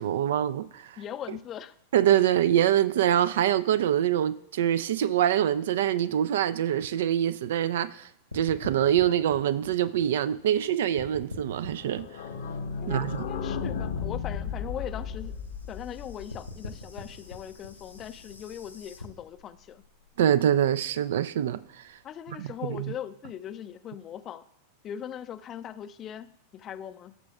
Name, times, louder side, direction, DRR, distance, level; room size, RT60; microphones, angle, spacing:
voice 1, 0.0-1.0 1.9-8.1 8.3-12.1 12.9-13.2 20.2-21.6 22.4-22.9, right 10 dB, 60° right, 0.3 m, -25 dB
voice 2, 1.0-1.8 12.8-15.3 15.7-19.8 22.0-24.4 24.8-27.2, left 10 dB, 30° left, 0.4 m, -40 dB
sound 1, 8.3-10.7 11.0-13.3 13.6-19.0, left 2 dB, 85° left, 1.2 m, -43 dB
sound 2, 11.8-17.3 17.6-17.7 17.9-18.0 18.3-18.4, left 6 dB, 60° left, 0.7 m, -35 dB
17.5 x 6.8 x 2.3 m
figure-of-eight pair, 90°, 0 cm